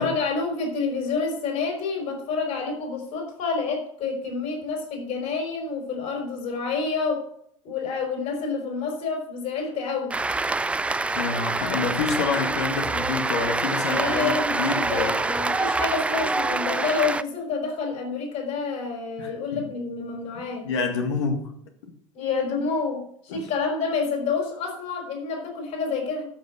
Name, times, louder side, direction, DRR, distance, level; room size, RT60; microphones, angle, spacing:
voice 1, 0.0-7.3 7.6-10.2 13.9-14.6 14.9-20.7 22.1-26.3, left 4 dB, 45° left, 5.0 m, -28 dB
Cheering / Applause, 10.1-17.2, right 3 dB, 5° right, 0.4 m, -26 dB
voice 2, 11.1-15.2 19.2-19.6 20.3-21.4 23.3-23.5, left 5 dB, 60° left, 2.0 m, -28 dB
12.5 x 6.6 x 6.7 m
figure-of-eight pair, 75°, 17 cm